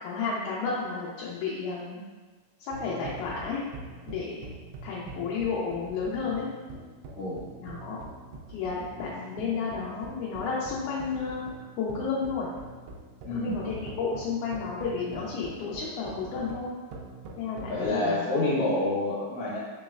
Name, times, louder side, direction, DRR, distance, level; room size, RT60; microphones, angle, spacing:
voice 1, 0.0-2.0 2.6-3.6 4.1-4.3 4.8-6.5 7.6-8.0 8.5-11.5 11.8-12.5 13.3-16.7 17.4-18.3, left 5 dB, 85° left, -5 dB, 2.0 m, -32 dB
sound 1, 2.7-18.0, right 2 dB, 90° right, 1.4 m, -44 dB
voice 2, 13.2-13.6 17.7-19.6, left 2 dB, 70° left, -6 dB, 2.2 m, -28 dB
4.9 x 3.0 x 2.3 m, 1.4 s
omnidirectional pair, 3.4 m